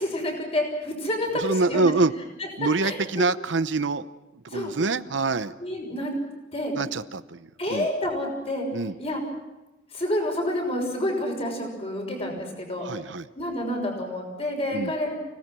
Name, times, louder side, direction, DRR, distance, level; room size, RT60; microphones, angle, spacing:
voice 1, 0.0-1.8 2.4-3.0 4.5-4.7 5.6-6.1 6.5-6.7 7.6-8.6 9.0-9.2 9.9-12.9 13.3-15.1, left 1 dB, 30° left, 2 dB, 6.0 m, -28 dB
voice 2, 1.4-2.1 2.6-4.1 4.5-5.5 6.7-7.9 8.7-8.9 12.8-13.3 14.7-14.9, right 3 dB, 75° right, 12 dB, 0.8 m, -25 dB
30.0 x 18.5 x 6.2 m, 1.0 s
head